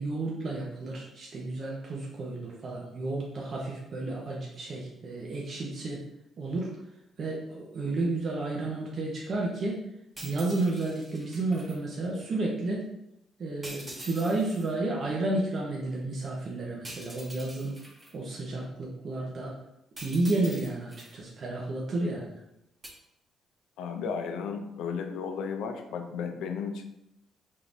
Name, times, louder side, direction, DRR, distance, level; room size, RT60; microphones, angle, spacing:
voice 1, 0.0-6.0 6.4-6.7 7.2-9.8 10.2-12.9 13.4-17.7 18.1-19.5 20.0-22.4, right 2 dB, 50° right, -3 dB, 0.9 m, -31 dB
sound 1, 10.2-11.8 13.6-14.7 16.8-18.1 20.0-21.2 22.8-22.9, right 1 dB, 25° right, 1.1 m, -45 dB
voice 2, 23.8-26.8, left 6 dB, 90° left, 5 dB, 0.5 m, -34 dB
4.6 x 3.8 x 2.6 m, 0.83 s
cardioid pair, 90°, 0 cm